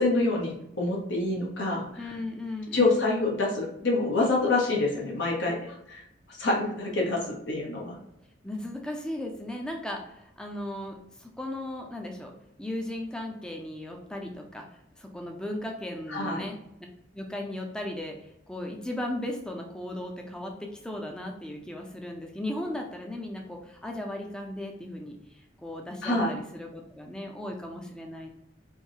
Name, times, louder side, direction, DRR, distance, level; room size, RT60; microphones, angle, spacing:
voice 1, 0.0-1.9 2.7-6.0 6.4-7.2 7.5-7.9 16.1-16.4 26.0-26.4, left 2 dB, 75° left, -2 dB, 1.0 m, -26 dB
voice 2, 2.0-3.1 8.4-12.3 12.6-14.6 15.0-16.6 17.1-18.2 18.5-25.2 25.6-28.3, left 1 dB, 5° left, 1 dB, 0.5 m, -36 dB
4.6 x 2.7 x 2.7 m, 0.81 s
head